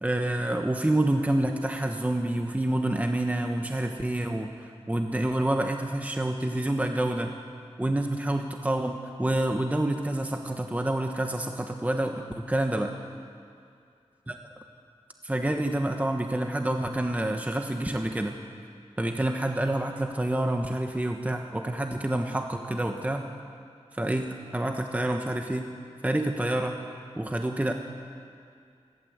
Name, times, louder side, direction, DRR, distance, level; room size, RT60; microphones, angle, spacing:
voice 1, 0.0-7.3 7.8-12.9 14.3-14.4 15.2-18.3 19.0-23.2 23.9-25.7 26.0-26.8 27.2-27.7, right 1 dB, 15° right, 4 dB, 1.1 m, -28 dB
27.5 x 12.5 x 8.0 m, 2.4 s
wide cardioid pair, 85°, 11 cm